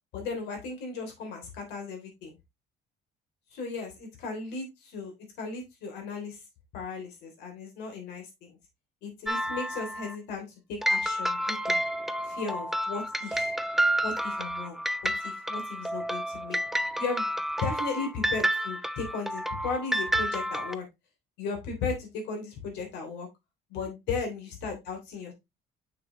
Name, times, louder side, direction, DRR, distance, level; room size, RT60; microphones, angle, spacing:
voice 1, 0.1-2.4 3.5-6.4 6.7-8.5 9.0-11.8 12.2-13.5 14.0-16.6 17.0-17.2 17.6-20.8 21.4-23.3 23.7-25.3, left 4 dB, 85° left, 3 dB, 3.2 m, -36 dB
sound 1, 9.3-10.2 10.8-20.8, equal, ahead, 0.5 m, -30 dB
6.6 x 6.2 x 3.0 m, 0.21 s
cardioid pair, 110°, 17 cm